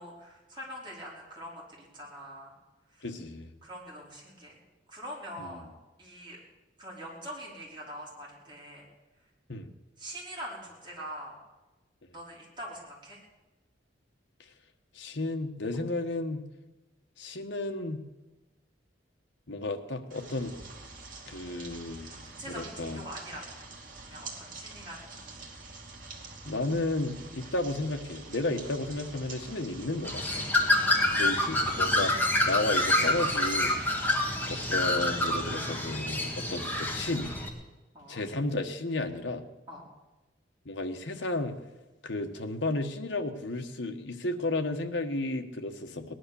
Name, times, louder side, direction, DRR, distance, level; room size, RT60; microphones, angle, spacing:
voice 1, 0.0-2.5 2.9-3.1 3.6-4.6 4.9-5.6 6.0-6.4 6.8-8.8 10.0-11.4 12.1-13.2 15.7-15.8 22.4-23.4 24.0-25.4 30.8-31.5 34.0-34.2 37.9-38.2 39.7-39.8, equal, 25° right, -4 dB, 4.9 m, -43 dB
voice 2, 3.0-3.5 5.4-5.6 9.5-9.7 14.9-16.5 17.2-18.0 19.5-20.6 21.3-22.1 22.4-23.0 26.4-30.4 31.1-33.8 34.5-37.4 38.1-39.4 40.6-41.6 42.0-46.1, left 2 dB, 75° left, 5 dB, 1.4 m, -33 dB
sound 1, 20.1-35.6, right 3 dB, 50° right, 2.5 m, -46 dB
Bird, 30.0-37.5, left 1 dB, 10° left, 2.0 m, -27 dB
18.5 x 11.0 x 7.0 m, 1.1 s
head